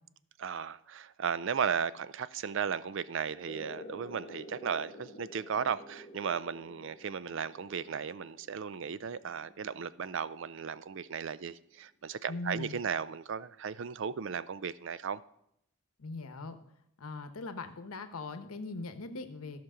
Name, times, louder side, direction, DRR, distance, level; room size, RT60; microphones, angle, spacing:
voice 1, 0.4-15.2, right 7 dB, 55° right, 0.4 m, -35 dB
sound 1, 3.4-10.6, left 1 dB, 35° left, 1.7 m, -50 dB
voice 2, 12.3-12.8 16.0-16.6 17.0-19.6, left 3 dB, 80° left, 0.9 m, -40 dB
14.0 x 6.0 x 4.9 m
head